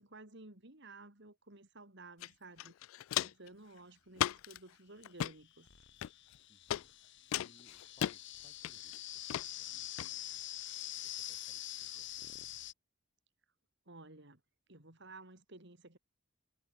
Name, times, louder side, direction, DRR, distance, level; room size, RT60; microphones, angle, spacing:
voice 1, 0.0-2.7 3.1-5.7 13.9-14.4 14.7-16.0, right 2 dB, 60° right, 4.1 m, -54 dB
Walk footsteps, 2.2-2.3 2.6-3.5 4.2-4.6 5.0-5.3 6.0-6.4 6.7-6.8 7.3-8.2 8.6-9.0 9.3-9.5 10.0-10.1, left 11 dB, 80° left, 0.3 m, -35 dB
sound 1, 5.3-12.7, left 13 dB, 65° left, 1.2 m, -45 dB
voice 2, 6.5-10.5 10.9-12.7, left 1 dB, 30° left, 5.9 m, -69 dB
head